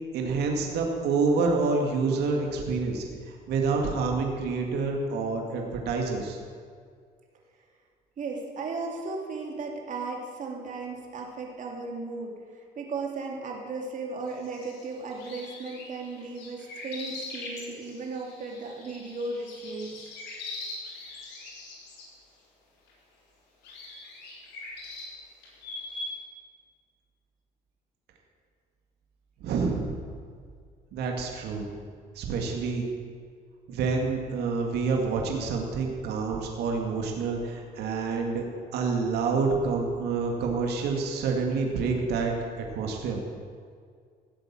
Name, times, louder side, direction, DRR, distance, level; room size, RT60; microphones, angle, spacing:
voice 1, 0.1-6.4 29.4-30.0 30.9-31.7 32.2-32.9 33.7-38.4 38.7-43.2, right 4 dB, 75° right, 1 dB, 2.1 m, -28 dB
voice 2, 8.2-20.1, right 3 dB, 50° right, 0 dB, 3.0 m, -36 dB
sound 1, 14.3-22.1 22.9-23.0 23.6-26.1, left 2 dB, 85° left, 4.4 m, -41 dB
16.0 x 8.1 x 7.4 m, 2.1 s
cardioid pair, 110°, 17 cm